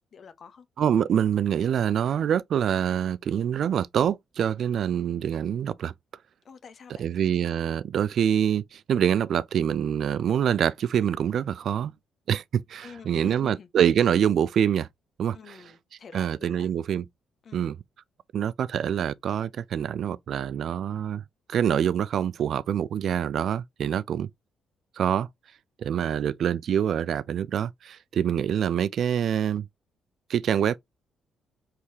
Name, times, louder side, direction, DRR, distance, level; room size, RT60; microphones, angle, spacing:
voice 1, 0.1-0.7 6.4-7.1 12.8-13.7 15.3-16.7 17.4-17.7 26.0-26.3, left 6 dB, 50° left, 0.8 m, -47 dB
voice 2, 0.8-5.9 7.0-11.9 12.3-14.9 15.2-15.6 16.1-17.1 17.5-17.8 18.3-21.2 21.5-24.3 25.0-25.3 25.8-29.7 30.3-30.8, right 9 dB, 65° right, 0.3 m, -25 dB
4.7 x 3.3 x 2.8 m
cardioid pair, 90°, 0 cm